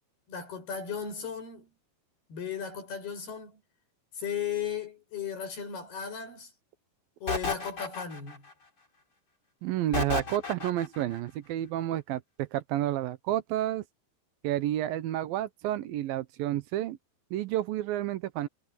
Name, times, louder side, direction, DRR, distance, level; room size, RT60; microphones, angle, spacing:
voice 1, 0.3-1.7 2.3-3.6 4.1-6.5 7.2-8.5, left 7 dB, 90° left, 9.7 m, -36 dB
sound 1, 7.3-8.5 9.9-11.0, left 4 dB, 25° left, 4.7 m, -32 dB
voice 2, 9.6-13.8 14.4-17.0 17.3-18.5, right 13 dB, 75° right, 2.6 m, -30 dB
omnidirectional pair, 4.4 m